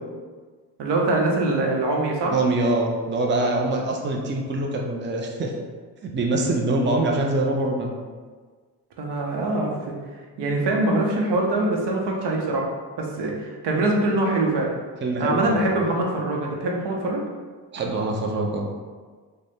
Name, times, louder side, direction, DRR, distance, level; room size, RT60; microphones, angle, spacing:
voice 1, 0.8-2.4 9.0-9.9 10.4-12.7 13.0-14.7 15.2-17.2, right 2 dB, 75° right, -1 dB, 0.8 m, -23 dB
voice 2, 2.3-5.5 6.0-7.9 15.0-15.6 17.7-18.7, right 2 dB, 30° right, 1 dB, 0.5 m, -24 dB
3.7 x 2.2 x 3.5 m, 1.5 s
cardioid pair, 70°, 41 cm